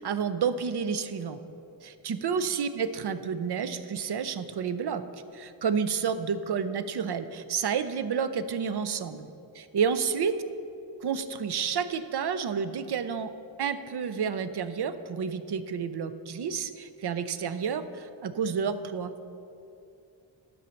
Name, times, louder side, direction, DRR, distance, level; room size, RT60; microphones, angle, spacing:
voice 1, 0.0-1.4 1.8-5.0 5.3-9.3 9.5-10.3 11.0-13.3 13.6-19.1, right 6 dB, 55° right, 12 dB, 0.5 m, -30 dB
10.5 x 5.4 x 7.0 m, 2.7 s
wide cardioid pair, 170°, 48 cm